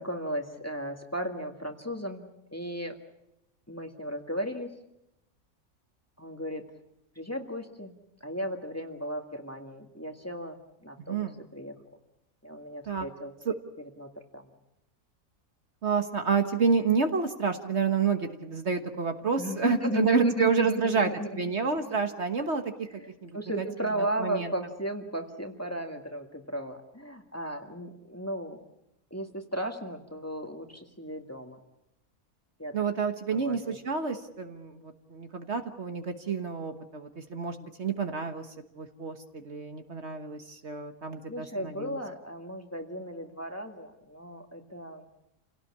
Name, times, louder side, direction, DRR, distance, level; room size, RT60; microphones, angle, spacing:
voice 1, 0.0-3.0 3.7-4.7 6.2-6.6 7.2-7.9 8.2-10.6 10.8-11.3 11.5-11.8 12.4-14.5 19.4-21.4 21.8-21.9 22.9-28.6 29.1-31.6 32.6-32.8 33.3-33.8 41.3-45.0, equal, 10° left, 3 dB, 1.9 m, -35 dB
voice 2, 15.8-22.9 23.2-23.3 24.2-24.5 32.7-38.5 38.7-42.0, right 5 dB, 50° right, 6 dB, 1.5 m, -29 dB
28.5 x 17.5 x 8.5 m, 0.87 s
omnidirectional pair, 1.5 m